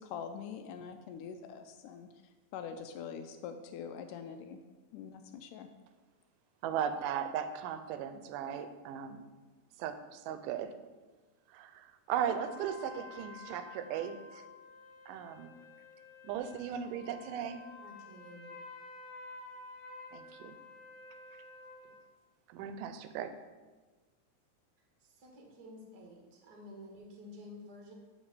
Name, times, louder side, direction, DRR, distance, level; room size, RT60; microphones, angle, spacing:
voice 1, 0.0-4.6 4.9-5.7, left 7 dB, 80° left, 7 dB, 2.0 m, -44 dB
voice 2, 6.6-9.3 9.8-10.8 11.5-14.5 15.1-15.6 16.2-17.6 20.1-20.6 22.5-23.3, right 8 dB, 80° right, 9 dB, 2.1 m, -37 dB
sound 1, 12.1-22.0, left 3 dB, 40° left, 2.1 m, -51 dB
voice 3, 17.8-18.5 25.0-27.9, left 1 dB, 60° right, 0 dB, 1.0 m, -51 dB
7.2 x 5.1 x 6.7 m, 1.3 s
omnidirectional pair, 4.0 m